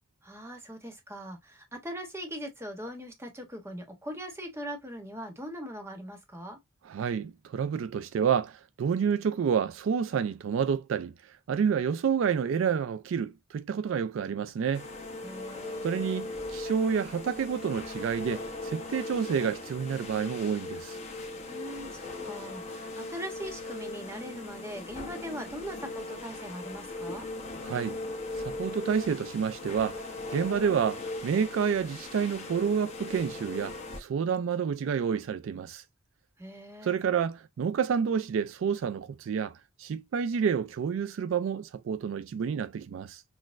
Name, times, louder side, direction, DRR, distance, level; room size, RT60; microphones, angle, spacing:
voice 1, 0.2-6.6 15.2-15.9 21.4-27.3 36.4-36.9, equal, 15° right, 0.9 m, -41 dB
voice 2, 6.8-14.9 15.8-21.0 27.6-28.0 28.4-30.0 30.3-35.8 36.8-43.2, right 7 dB, 65° right, 0.3 m, -29 dB
sound 1, 14.7-34.0, left 2 dB, 35° left, 0.8 m, -39 dB
6.1 x 2.1 x 2.4 m
head